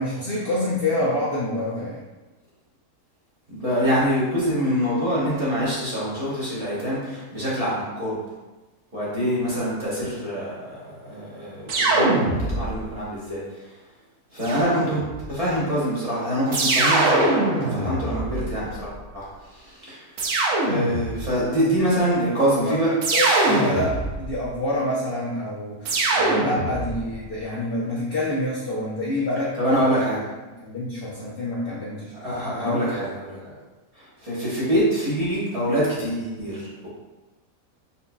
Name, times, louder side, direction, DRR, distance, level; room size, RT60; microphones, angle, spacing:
voice 1, 0.0-2.0 21.8-21.9 22.6-30.0 30.6-32.1 32.6-33.0, left 1 dB, 60° left, -6 dB, 0.6 m, -27 dB
voice 2, 3.5-8.2 8.9-13.4 14.3-15.0 15.3-17.3 17.7-20.0 20.6-22.9 29.6-30.2 32.1-33.4 33.9-36.9, equal, 30° right, -9 dB, 0.9 m, -25 dB
Various lazer sounds, 11.7-12.9 14.4-15.3 16.5-18.8 20.2-21.3 23.0-24.4 25.9-27.1, right 2 dB, 70° right, 0.9 m, -23 dB
4.2 x 2.7 x 2.2 m, 1.1 s
omnidirectional pair, 1.6 m